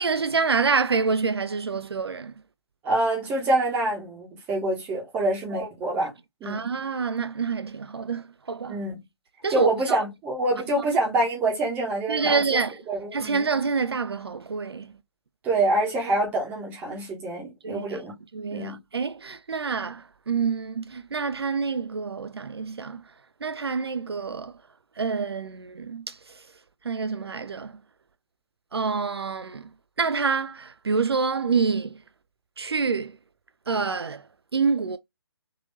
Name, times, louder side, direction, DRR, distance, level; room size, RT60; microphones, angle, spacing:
voice 1, 0.0-2.3 5.5-5.7 6.4-8.8 9.4-10.0 12.1-12.8 13.1-14.9 17.6-18.0 18.3-23.0 23.4-24.5 25.0-26.5 26.8-27.8 28.7-29.7 30.0-32.0 32.6-33.1 33.7-34.2 34.5-35.0, right 5 dB, 70° right, 0.4 m, -27 dB
voice 2, 2.8-6.1 6.4-6.6 8.7-9.0 9.5-12.6 12.9-13.4 15.4-18.1 18.5-18.8, right 2 dB, 10° right, 1.2 m, -26 dB
3.7 x 2.9 x 2.7 m
figure-of-eight pair, 140°, 14 cm